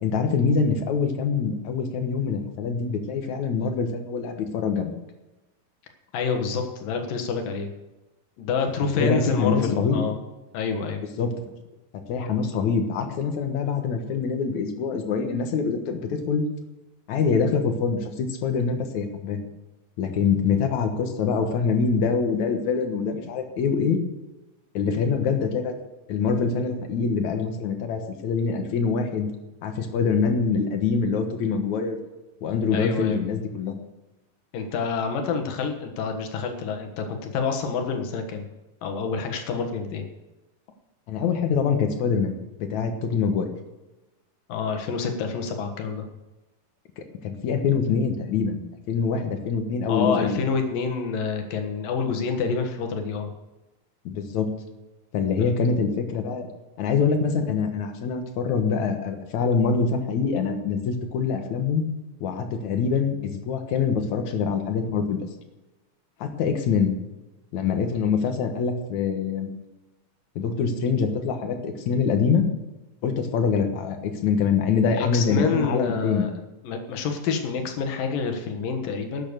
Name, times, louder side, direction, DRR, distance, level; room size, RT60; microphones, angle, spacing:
voice 1, 0.0-4.9 8.9-10.0 11.2-11.3 12.1-16.4 17.1-19.5 20.0-24.0 24.7-25.7 26.1-29.3 29.6-32.0 32.4-33.7 41.1-43.5 47.0-50.4 54.1-54.5 55.1-56.5 56.8-61.8 62.2-65.2 66.2-66.9 67.5-69.5 70.4-72.5 73.0-76.3, left 5 dB, 65° left, 6 dB, 2.5 m, -24 dB
voice 2, 6.1-7.7 8.4-10.2 10.5-11.0 32.7-33.2 34.5-38.5 38.8-40.0 44.5-46.0 49.9-53.3 55.4-55.5 74.9-76.3 76.6-79.2, left 5 dB, 90° left, 5 dB, 3.2 m, -27 dB
12.0 x 8.9 x 6.7 m, 1.1 s
omnidirectional pair, 3.9 m